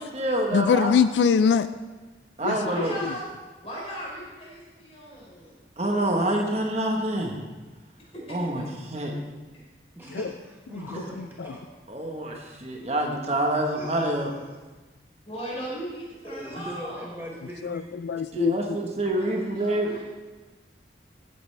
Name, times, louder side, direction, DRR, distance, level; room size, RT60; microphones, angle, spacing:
voice 1, 0.0-0.9 2.4-2.9 5.8-7.4 8.3-8.6 8.9-9.1 11.0-11.1 11.9-14.3 16.6-16.7 18.3-20.0, right 1 dB, 35° right, 1 dB, 1.2 m, -27 dB
voice 2, 0.5-1.7 2.4-2.6 10.1-10.2 17.6-18.6, left 6 dB, 75° left, 12 dB, 0.3 m, -22 dB
voice 3, 2.6-3.2 3.6-5.6 8.1-8.7 15.3-17.3 19.1-20.0, equal, 35° left, -5 dB, 3.9 m, -37 dB
voice 4, 10.0-11.6 13.7-14.3 16.2-18.0, equal, 10° right, -2 dB, 0.9 m, -40 dB
15.0 x 8.8 x 3.3 m, 1.2 s
head